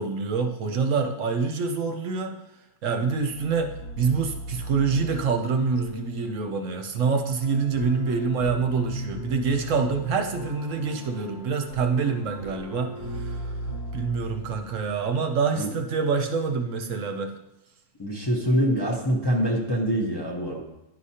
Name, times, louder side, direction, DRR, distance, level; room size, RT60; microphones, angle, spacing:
voice 1, 0.0-2.4 2.8-13.5 13.9-17.3, right 5 dB, 65° right, 5 dB, 0.9 m, -26 dB
sound 1, 3.0-15.1, equal, 85° left, 1.6 m, -37 dB
voice 2, 18.0-20.6, equal, 20° left, -2 dB, 0.7 m, -24 dB
11.0 x 4.9 x 2.8 m, 0.92 s
omnidirectional pair, 1.5 m